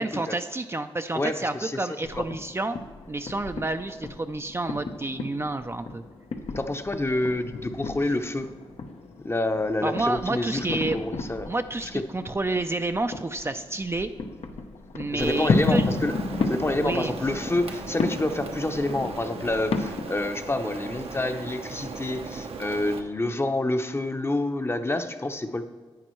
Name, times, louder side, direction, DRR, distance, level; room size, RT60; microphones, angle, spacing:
voice 1, 0.0-2.8 3.1-6.0 9.8-11.0 11.4-14.1 14.9-15.9 16.8-17.1, right 2 dB, 25° right, 7 dB, 0.4 m, -29 dB
voice 2, 1.1-1.9 2.2-2.3 6.6-8.5 9.2-10.7 10.9-11.5 11.9-12.0 15.1-16.1 16.5-25.6, left 2 dB, 25° left, 7 dB, 0.7 m, -28 dB
sound 1, 2.0-20.2, left 4 dB, 75° left, 0.7 m, -33 dB
Rain, 15.2-23.0, right 4 dB, 70° right, 0.8 m, -38 dB
10.5 x 8.9 x 3.1 m, 1.5 s
cardioid pair, 50°, 10 cm